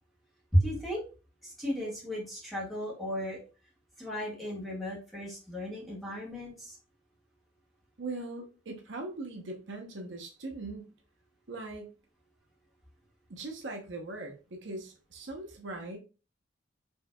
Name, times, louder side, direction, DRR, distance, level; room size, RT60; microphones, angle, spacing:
voice 1, 0.5-1.0 1.4-3.4 4.0-6.8, equal, ahead, -6 dB, 1.7 m, -33 dB
voice 2, 8.0-10.9 11.5-12.0 13.3-16.0, right 2 dB, 70° right, 2 dB, 0.8 m, -40 dB
4.5 x 3.2 x 2.2 m, 0.33 s
head